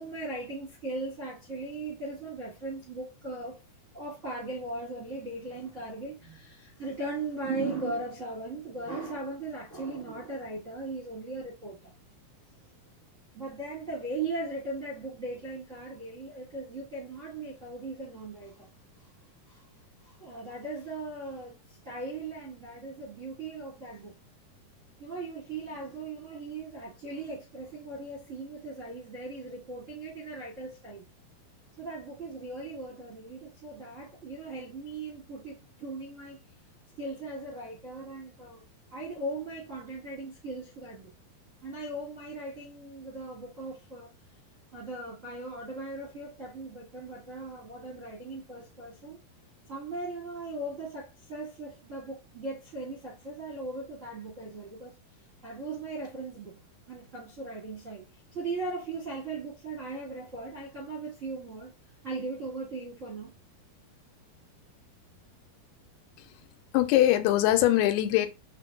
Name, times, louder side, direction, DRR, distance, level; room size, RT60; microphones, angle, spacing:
voice 1, 0.0-3.6 3.9-11.9 13.3-18.7 19.5-19.6 20.0-24.1 25.0-31.0 31.8-36.4 37.0-38.6 38.9-41.1 41.6-44.1 44.7-49.2 49.7-54.9 55.4-56.6 56.9-58.0 58.3-61.7 62.0-63.3, right 2 dB, 45° right, 0.9 m, -38 dB
voice 2, 66.7-68.3, left 14 dB, 85° left, 2.6 m, -22 dB
5.7 x 3.7 x 2.3 m
omnidirectional pair, 4.5 m